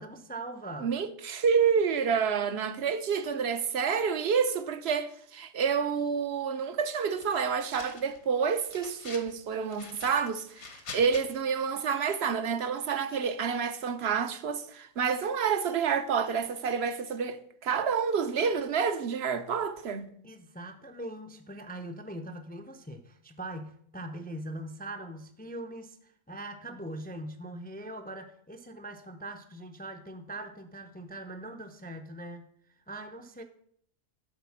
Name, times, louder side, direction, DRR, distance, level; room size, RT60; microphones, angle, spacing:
voice 1, 0.0-0.9 20.2-32.5 32.9-33.4, right 1 dB, 10° left, 0.4 m, -41 dB
voice 2, 0.8-20.1, right 6 dB, 65° right, 1.0 m, -28 dB
sound 1, 7.2-8.2 8.5-9.3 9.7-11.2, left 5 dB, 70° left, 1.4 m, -46 dB
11.0 x 4.1 x 7.1 m
omnidirectional pair, 1.2 m